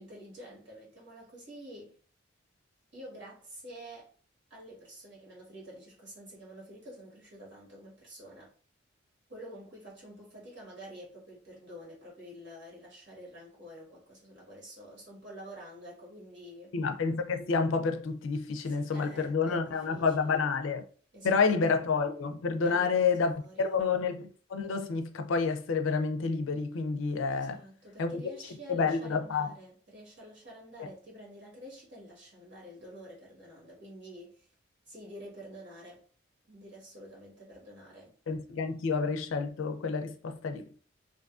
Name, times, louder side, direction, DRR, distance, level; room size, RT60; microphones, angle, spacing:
voice 1, 0.0-2.0 2.9-4.1 4.5-8.5 9.3-16.7 18.6-20.4 21.1-21.5 22.6-23.8 27.3-34.5 34.9-36.0 36.5-38.1, equal, 65° right, 1.3 m, -48 dB
voice 2, 16.7-20.8 21.2-27.6 28.0-28.2 28.7-29.5 38.3-40.7, left 5 dB, 75° left, 0.4 m, -29 dB
2.5 x 2.3 x 2.4 m
head